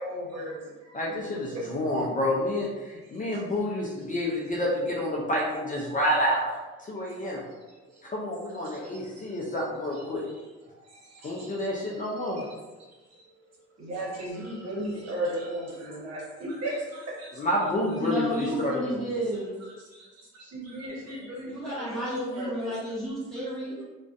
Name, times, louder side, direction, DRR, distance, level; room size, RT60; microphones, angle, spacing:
voice 1, 0.0-1.6 3.0-3.5 3.9-4.0 4.5-4.7 6.9-8.0 8.5-9.6 9.9-12.5 12.8-17.5 18.4-18.5 19.8-22.7, right 1 dB, 55° right, -4 dB, 1.0 m, -38 dB
voice 2, 0.9-7.4 8.0-10.3 11.2-12.4 17.4-18.5 18.7-18.8, left 1 dB, 25° left, -3 dB, 0.5 m, -29 dB
voice 3, 18.0-19.6 21.5-23.8, equal, ahead, -9 dB, 1.4 m, -32 dB
2.4 x 2.2 x 2.4 m, 1.2 s
supercardioid pair, 70°, 30 cm